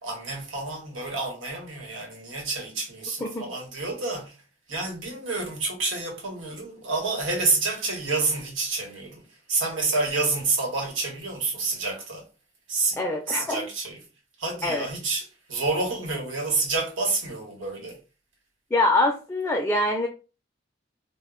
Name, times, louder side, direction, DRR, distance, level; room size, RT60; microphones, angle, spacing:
voice 1, 0.0-4.3 4.7-9.2 9.5-12.2 12.7-13.0 13.3-14.0 14.4-15.2 15.5-18.0, right 3 dB, 85° right, 1.0 m, -28 dB
voice 2, 13.0-13.6 14.6-14.9 18.7-20.1, left 2 dB, 10° left, 0.3 m, -24 dB
2.0 x 2.0 x 3.7 m
head